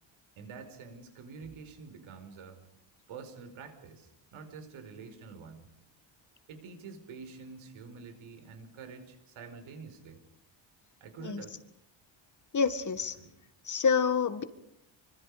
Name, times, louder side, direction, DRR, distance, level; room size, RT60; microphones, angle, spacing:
voice 1, 0.4-2.6 3.1-5.7 6.5-10.2 11.0-11.6 13.2-13.3, right 5 dB, 80° right, 9 dB, 5.3 m, -47 dB
voice 2, 12.5-13.2 13.7-14.4, left 5 dB, 40° left, 11 dB, 1.9 m, -27 dB
26.5 x 25.0 x 5.1 m, 0.78 s
cardioid pair, 140°, 48 cm